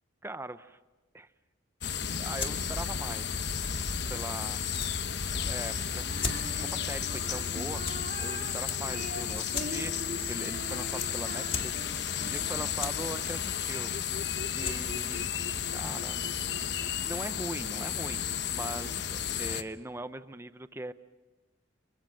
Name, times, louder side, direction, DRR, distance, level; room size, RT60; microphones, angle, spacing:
voice 1, 0.2-0.8 1.1-1.3 2.2-3.5 4.1-4.6 5.4-6.3 6.6-7.8 8.2-11.9 12.2-13.9 14.5-16.5 16.9-18.2 18.5-20.9, right 1 dB, 10° right, 11 dB, 0.7 m, -41 dB
sound 1, 1.8-19.6, left 8 dB, 55° left, 1.0 m, -33 dB
sound 2, 2.0-16.4, left 4 dB, 25° left, 1.8 m, -43 dB
Female singing, 6.1-13.4, right 1 dB, 45° right, 2.2 m, -43 dB
28.0 x 24.5 x 6.5 m, 1.1 s
head